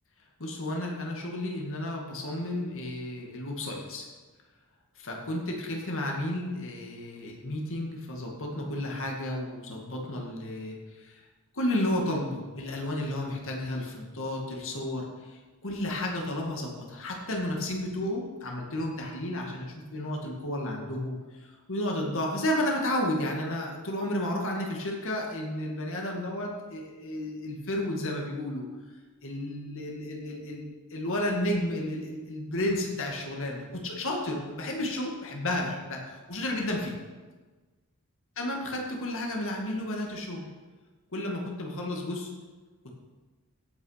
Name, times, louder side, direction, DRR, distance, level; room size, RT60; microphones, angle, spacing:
voice 1, 0.4-4.1 5.0-11.2 11.5-28.7 29.2-36.9 38.4-40.5 41.1-42.3, left 1 dB, 65° left, 0 dB, 2.1 m, -32 dB
16.5 x 6.0 x 5.7 m, 1.3 s
head